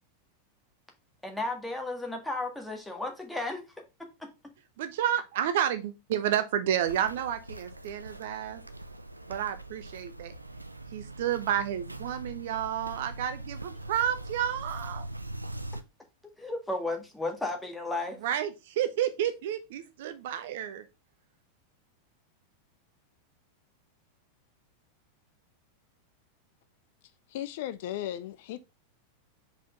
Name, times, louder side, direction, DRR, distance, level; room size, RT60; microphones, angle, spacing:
voice 1, 1.2-3.6 16.4-18.2, left 2 dB, 5° left, 1.7 m, -33 dB
voice 2, 4.8-8.6 9.3-10.3 10.9-15.0 18.2-20.8, right 10 dB, 55° right, 0.8 m, -30 dB
Walk footsteps, 6.8-15.8, right 1 dB, 85° right, 0.5 m, -42 dB
voice 3, 27.3-28.6, left 12 dB, 50° left, 0.4 m, -36 dB
5.1 x 4.3 x 5.0 m
figure-of-eight pair, 90°, 0 cm